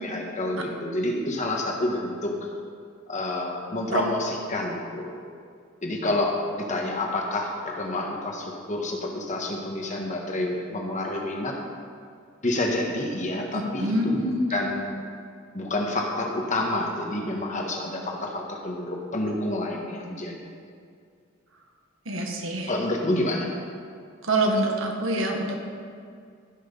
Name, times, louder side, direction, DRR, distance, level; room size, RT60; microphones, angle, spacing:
voice 1, 0.0-2.4 3.1-5.1 5.8-11.6 12.4-14.2 14.5-14.9 15.5-20.4 22.7-23.5, left 1 dB, 40° left, 0 dB, 1.5 m, -28 dB
voice 2, 13.5-14.4 22.0-22.7 24.2-25.6, right 1 dB, 85° right, 1 dB, 1.6 m, -26 dB
15.5 x 6.1 x 5.4 m, 2.2 s
head